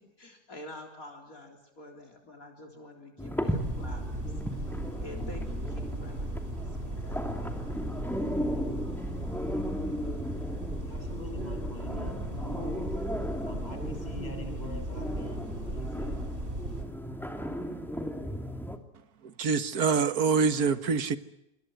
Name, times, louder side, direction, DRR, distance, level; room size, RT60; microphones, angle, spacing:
voice 1, 0.2-4.2 4.5-4.6 5.0-6.5 6.8-7.8, left 1 dB, 55° left, 4.1 m, -48 dB
sound 1, 3.2-18.8, equal, ahead, 2.8 m, -36 dB
sound 2, 3.5-16.8, right 1 dB, 35° right, 4.5 m, -37 dB
voice 2, 10.9-13.2 13.5-16.4, equal, 25° left, 7.2 m, -44 dB
voice 3, 19.2-21.2, right 5 dB, 65° right, 2.0 m, -25 dB
27.0 x 25.5 x 7.9 m
omnidirectional pair, 1.7 m